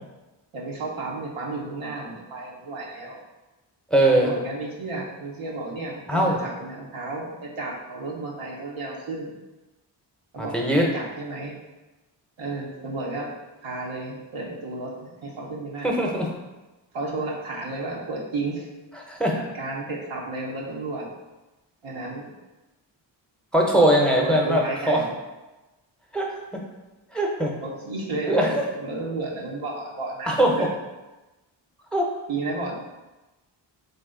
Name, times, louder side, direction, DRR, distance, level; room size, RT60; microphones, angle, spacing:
voice 1, 0.5-3.2 4.1-9.3 10.3-10.5 10.9-11.6 12.4-13.3 13.6-16.0 16.9-18.7 19.3-21.1 21.8-22.3 24.1-25.0 27.6-30.7 32.3-32.7, right 2 dB, 80° right, -3 dB, 0.9 m, -32 dB
voice 2, 3.9-4.3 6.1-6.4 10.4-10.8 15.8-16.3 19.1-19.4 23.5-25.0 26.1-26.6 27.1-27.5 28.3-28.6 30.3-30.7 31.9-32.1, right 1 dB, ahead, -1 dB, 0.7 m, -21 dB
3.2 x 2.7 x 3.7 m, 1.1 s
cardioid pair, 55°, 46 cm